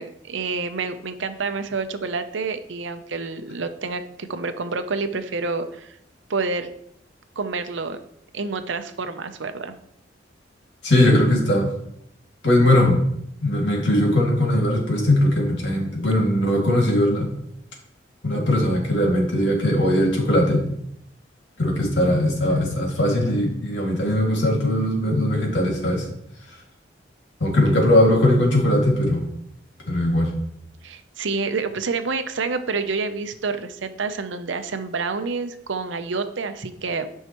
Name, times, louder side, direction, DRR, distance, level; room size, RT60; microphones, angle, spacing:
voice 1, 0.0-6.0 6.3-6.7 7.4-8.0 8.3-9.8 30.8-37.1, right 4 dB, 75° right, 9 dB, 0.7 m, -28 dB
voice 2, 10.8-11.7 12.4-13.0 13.4-17.3 18.2-20.6 21.6-26.1 27.4-29.2 29.9-30.3, left 1 dB, 70° left, -1 dB, 2.3 m, -19 dB
11.5 x 5.5 x 3.0 m, 0.75 s
head